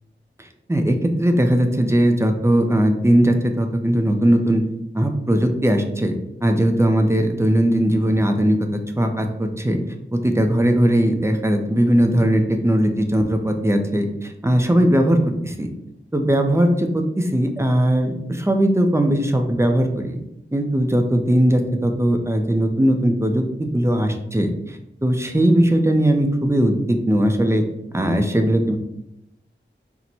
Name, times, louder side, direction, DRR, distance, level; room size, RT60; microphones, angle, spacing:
voice 1, 0.7-4.6 4.9-9.8 10.1-15.7 16.1-20.2 20.5-24.5 25.0-27.6 27.9-28.8, right 1 dB, 15° right, 4 dB, 0.5 m, -19 dB
4.4 x 2.1 x 4.1 m, 0.84 s
wide cardioid pair, 55°, 20 cm